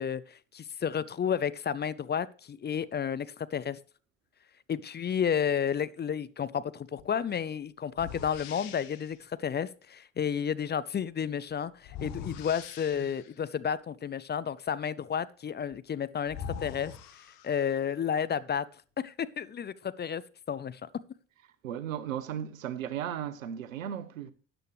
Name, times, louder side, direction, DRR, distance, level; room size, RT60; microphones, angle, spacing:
voice 1, 0.0-3.8 4.7-16.9 17.4-18.7 19.0-20.2 20.5-20.9, left 8 dB, 25° left, 0.6 m, -31 dB
sound 1, 7.0-7.2 7.9-9.2 11.8-13.4 15.7-15.8 16.2-17.9, left 7 dB, 65° left, 1.4 m, -43 dB
voice 2, 21.6-24.3, right 9 dB, 85° right, 0.8 m, -35 dB
13.0 x 8.9 x 3.2 m
hypercardioid pair, 55°, 39 cm